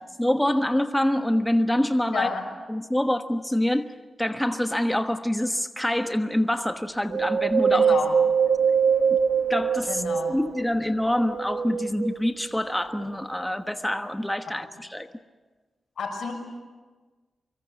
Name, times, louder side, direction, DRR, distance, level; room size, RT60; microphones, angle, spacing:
voice 1, 0.2-2.3 2.7-3.8 4.2-7.9 9.1-9.2 9.5-10.0 10.3-15.1, left 1 dB, 5° left, 7 dB, 1.2 m, -25 dB
voice 2, 2.1-2.5 7.7-8.1 9.9-10.4 14.5-14.6 16.0-16.3, left 5 dB, 80° left, 4 dB, 6.0 m, -30 dB
Wind, 7.1-10.7 11.2-12.4 13.0-13.1, right 6 dB, 75° right, 1.6 m, -23 dB
25.5 x 22.5 x 8.2 m, 1.3 s
cardioid pair, 75°, 0 cm